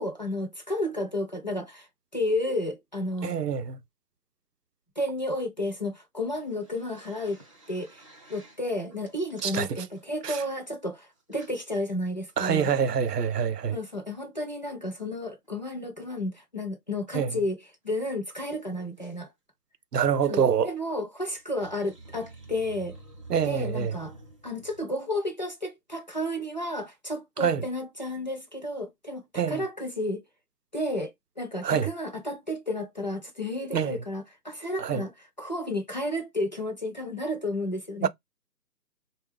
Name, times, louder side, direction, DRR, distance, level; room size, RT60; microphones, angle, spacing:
voice 1, 0.0-3.4 5.0-7.4 7.7-8.0 8.3-12.7 13.7-19.3 20.3-23.0 23.4-24.1 24.4-30.2 30.7-35.1 35.4-38.1, left 1 dB, 30° left, 0.5 m, -32 dB
voice 2, 3.2-3.8 9.4-9.8 10.2-10.4 12.4-13.8 17.1-17.3 19.9-20.7 23.3-23.9 27.4-27.6 29.3-29.6 31.6-31.9 33.7-34.0 34.8-35.0 38.0-38.1, right 7 dB, 80° right, 0.6 m, -26 dB
sound 1, 6.2-8.6 8.9-10.7 11.2-11.6 12.1-12.2 12.4-13.1 15.2-15.5 17.3-17.4 17.6-17.7 17.9-18.0 18.3-19.2 20.3-20.5 21.4-24.8, right 2 dB, 20° right, 0.6 m, -49 dB
3.7 x 2.2 x 3.5 m
figure-of-eight pair, 155°, 47 cm